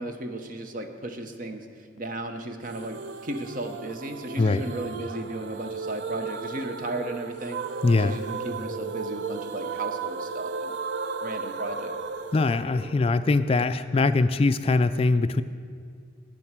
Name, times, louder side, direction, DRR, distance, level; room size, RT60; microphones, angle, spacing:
voice 1, 0.0-1.7 2.0-7.6 7.9-10.7 11.2-11.9, right 1 dB, 45° right, 6 dB, 0.8 m, -35 dB
sound 1, 2.7-13.6, right 5 dB, 60° right, 0.4 m, -35 dB
voice 2, 7.8-8.1 12.3-15.4, left 3 dB, 30° left, 11 dB, 0.3 m, -22 dB
9.1 x 7.8 x 7.3 m, 2.2 s
head